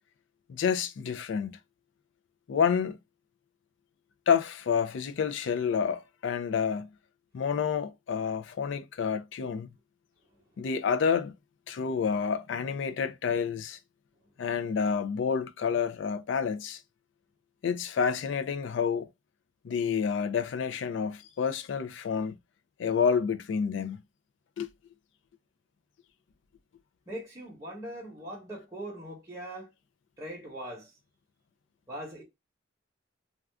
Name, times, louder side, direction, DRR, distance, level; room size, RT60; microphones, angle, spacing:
voice 1, 0.5-1.6 2.5-3.0 4.3-6.9 7.3-9.7 10.6-11.3 11.7-13.8 14.4-16.8 17.6-19.1 19.6-22.4 22.8-24.0 24.6-24.7, left 6 dB, 70° left, 0.3 m, -29 dB
voice 2, 27.1-29.7 30.2-30.9 31.9-32.2, right 1 dB, 15° right, 0.9 m, -41 dB
2.4 x 2.3 x 3.3 m
head